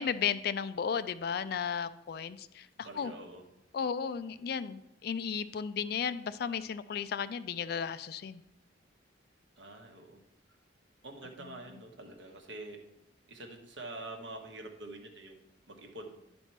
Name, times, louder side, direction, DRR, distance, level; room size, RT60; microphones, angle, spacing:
voice 1, 0.0-2.7 3.0-3.1 3.7-8.4 11.4-11.6, left 7 dB, 55° left, 14 dB, 0.3 m, -34 dB
voice 2, 2.8-3.4 9.6-10.2 11.0-12.8 13.3-16.1, right 2 dB, 75° right, 2 dB, 1.2 m, -46 dB
10.0 x 4.4 x 4.4 m, 0.83 s
head